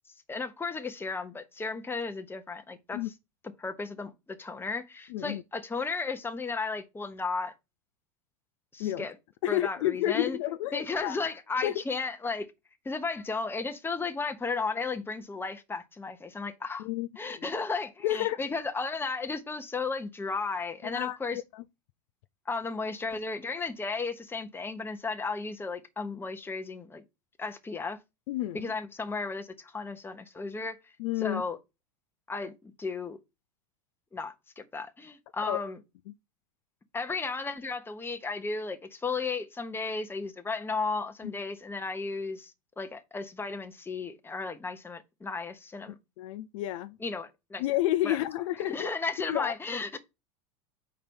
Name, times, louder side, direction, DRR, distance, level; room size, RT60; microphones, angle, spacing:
voice 1, 0.3-3.0 3.6-7.5 8.7-9.1 9.5-10.4 10.7-12.5 12.8-16.9 17.2-21.4 22.5-27.0 27.4-28.0 28.5-30.8 31.2-31.6 32.3-32.5 32.8-33.2 34.1-35.8 36.9-46.0 47.0-47.6 48.0-48.2 48.6-50.0, left 4 dB, 10° left, 1.1 m, -34 dB
voice 2, 5.1-5.4 8.8-9.1 9.4-11.2 11.6-11.7 16.8-17.1 17.4-17.5 18.0-18.4 20.8-21.6 28.3-28.7 31.0-31.4 35.4-35.6 41.2-41.3 46.2-47.0 47.6-48.9 49.3-49.5, left 14 dB, 65° left, 0.5 m, -30 dB
5.0 x 4.6 x 5.4 m
hypercardioid pair, 100°, 17 cm